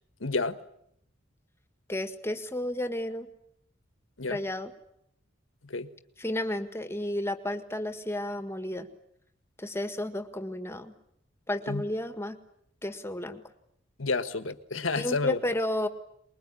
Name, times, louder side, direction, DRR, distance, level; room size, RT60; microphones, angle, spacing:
voice 1, 0.2-0.6 4.2-4.4 5.6-5.9 11.7-11.8 14.0-15.4, left 3 dB, 85° left, 11 dB, 1.5 m, -30 dB
voice 2, 1.9-3.3 4.3-4.7 6.2-8.9 9.6-10.9 11.5-12.4 12.8-13.4 14.9-15.9, left 1 dB, 15° left, 9 dB, 1.7 m, -32 dB
24.5 x 21.5 x 9.9 m, 0.73 s
head